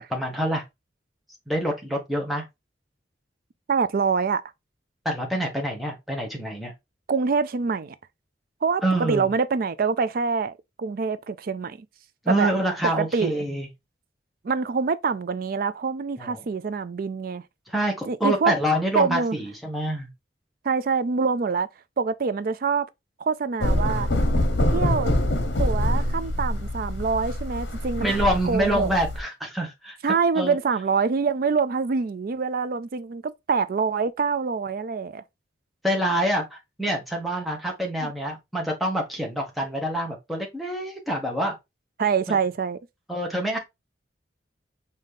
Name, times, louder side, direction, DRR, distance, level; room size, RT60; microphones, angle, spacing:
voice 1, 0.1-0.6 1.5-2.4 5.0-6.7 8.8-9.3 12.2-13.7 16.2-16.4 17.7-20.1 28.0-30.0 30.4-30.6 35.8-41.5 42.3-42.4 43.1-43.6, right 1 dB, ahead, 1.1 m, -26 dB
voice 2, 3.7-4.4 7.1-7.9 8.6-11.9 12.3-12.5 13.0-13.3 14.4-17.4 18.1-18.5 18.9-19.4 20.6-21.7 22.0-22.9 23.2-24.1 24.7-25.1 25.6-28.1 28.4-28.9 30.0-35.2 38.0-38.1 42.0-42.8, right 5 dB, 50° right, 0.4 m, -25 dB
sound 1, 23.6-29.2, left 1 dB, 65° left, 1.1 m, -25 dB
5.0 x 2.8 x 3.6 m
head